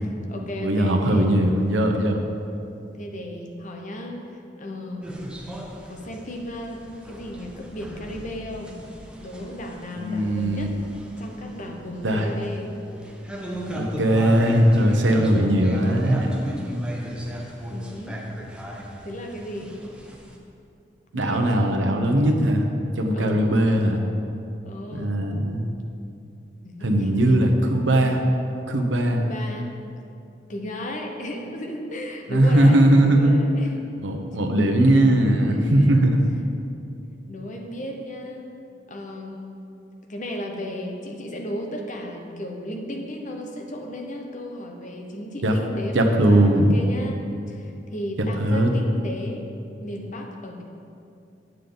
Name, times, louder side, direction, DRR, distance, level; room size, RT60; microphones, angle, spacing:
voice 1, 0.0-1.4 2.9-5.2 5.8-8.8 9.2-10.7 11.2-12.7 17.7-18.2 19.0-19.7 21.1-21.9 23.1-23.6 24.6-25.2 26.6-27.5 29.2-29.7 30.5-33.8 35.5-36.1 37.3-38.5 38.9-39.5 40.1-49.4 49.8-50.6, left 1 dB, 45° left, 2 dB, 0.9 m, -35 dB
voice 2, 0.6-2.2 10.0-10.7 12.0-12.3 13.7-16.3 21.1-22.7 23.0-24.0 24.9-25.6 26.8-28.2 28.7-29.3 32.3-33.4 34.0-36.3 45.4-45.6 45.9-46.7 48.4-48.7, right 1 dB, 85° right, 3 dB, 0.8 m, -19 dB
sound 1, 5.0-20.4, equal, 5° right, 0.8 m, -36 dB
9.1 x 6.8 x 3.9 m, 2.6 s
head